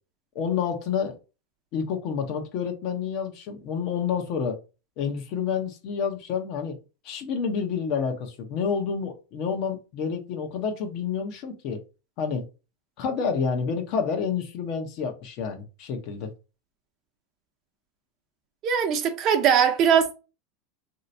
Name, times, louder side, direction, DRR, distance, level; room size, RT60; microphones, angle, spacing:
voice 1, 0.3-1.2 1.7-4.6 5.0-6.8 7.0-11.8 12.2-12.4 13.0-16.3, left 6 dB, 55° left, 0.9 m, -29 dB
voice 2, 18.6-20.2, right 8 dB, 45° right, 0.7 m, -21 dB
3.2 x 2.8 x 2.7 m
supercardioid pair, 120°, 0 cm